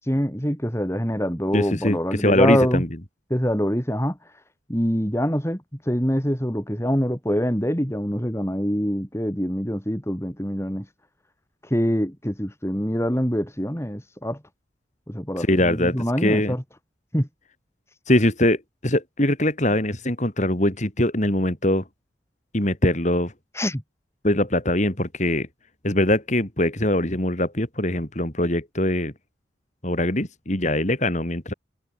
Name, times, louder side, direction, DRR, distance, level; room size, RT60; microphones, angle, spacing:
voice 1, 0.0-2.8 3.3-4.4 4.7-10.9 11.6-14.4 15.1-16.6 17.1-17.3 23.5-23.8, equal, 15° left, 6.9 m, -25 dB
voice 2, 1.5-2.9 15.4-16.5 18.1-21.8 22.5-23.3 24.2-25.5 25.8-29.1 29.8-31.5, left 1 dB, 40° left, 3.4 m, -22 dB
head